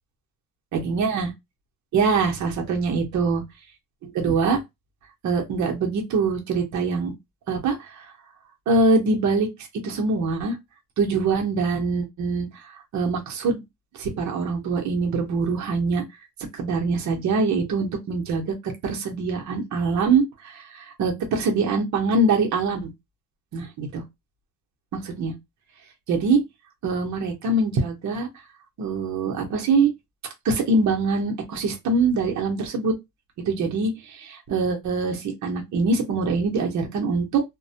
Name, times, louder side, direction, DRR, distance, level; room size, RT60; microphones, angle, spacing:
voice 1, 0.7-1.3 1.9-3.4 4.0-4.6 5.2-7.1 7.5-8.1 8.7-9.5 9.8-10.6 11.0-12.6 12.9-13.6 13.9-16.0 16.5-22.9 23.5-24.0 24.9-25.3 26.1-26.4 26.8-28.3 28.8-29.9 30.4-32.9 33.4-37.4, right 3 dB, 70° right, 0.8 m, -23 dB
2.2 x 2.1 x 2.7 m
cardioid pair, 90°, 30 cm